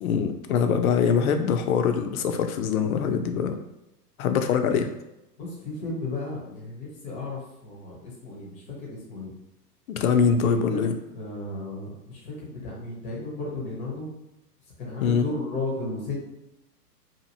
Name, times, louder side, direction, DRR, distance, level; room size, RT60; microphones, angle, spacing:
voice 1, 0.0-3.6 4.2-4.9 9.9-10.9 15.0-15.3, left 6 dB, 60° left, 7 dB, 0.5 m, -23 dB
voice 2, 5.4-9.3 10.4-10.8 11.1-14.1 14.8-16.3, left 2 dB, 15° left, -4 dB, 0.6 m, -34 dB
2.7 x 2.5 x 2.7 m, 0.90 s
hypercardioid pair, 130°, 49 cm